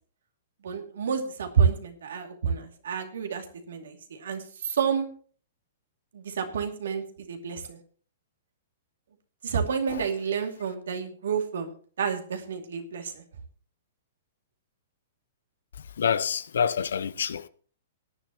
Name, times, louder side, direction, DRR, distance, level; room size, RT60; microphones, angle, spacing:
voice 1, 0.6-5.1 6.1-7.8 9.4-11.7 12.0-13.2, right 6 dB, 75° right, 2.5 m, -29 dB
voice 2, 16.0-17.5, left 7 dB, 75° left, 0.7 m, -27 dB
18.0 x 10.5 x 3.0 m
hypercardioid pair, 120°, 0 cm